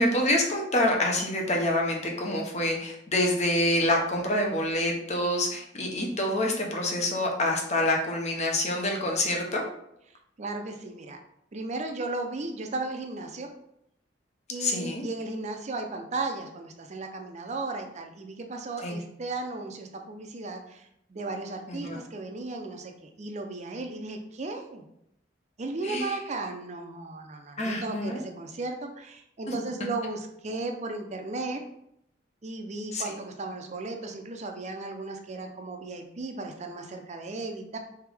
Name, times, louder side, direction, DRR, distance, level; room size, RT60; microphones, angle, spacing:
voice 1, 0.0-9.6 14.6-15.0 18.8-19.0 21.7-22.0 25.8-26.1 27.6-28.2 32.9-33.0, left 1 dB, 40° left, 1 dB, 0.8 m, -26 dB
voice 2, 10.4-11.2 11.5-13.5 14.5-24.8 25.6-31.6 32.4-37.8, right 3 dB, 40° right, 4 dB, 0.5 m, -35 dB
3.6 x 3.4 x 3.4 m, 0.76 s
head